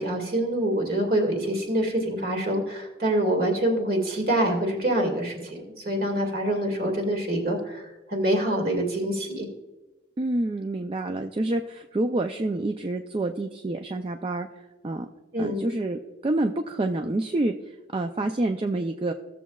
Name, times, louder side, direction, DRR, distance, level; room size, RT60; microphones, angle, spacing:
voice 1, 0.0-7.8 8.1-9.5 15.3-15.6, right 1 dB, 50° right, 1 dB, 1.9 m, -25 dB
voice 2, 10.2-15.1 15.4-19.1, right 2 dB, 25° right, 5 dB, 0.3 m, -28 dB
16.0 x 7.2 x 2.3 m, 1.2 s
head